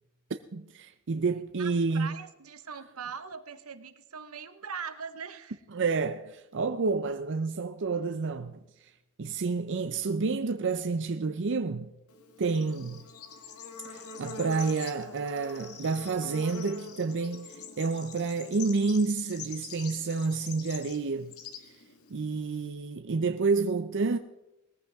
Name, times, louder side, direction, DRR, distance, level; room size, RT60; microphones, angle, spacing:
voice 1, 0.3-2.2 5.7-8.9 9.2-11.9 12.4-13.1 13.8-21.4 21.7-21.8 22.1-24.2, right 4 dB, 60° right, 0.6 m, -29 dB
voice 2, 1.6-5.6, right 6 dB, 85° right, 1.2 m, -41 dB
Bird / Insect, 12.1-22.7, left 5 dB, 85° left, 1.6 m, -44 dB
20.0 x 14.5 x 3.6 m
head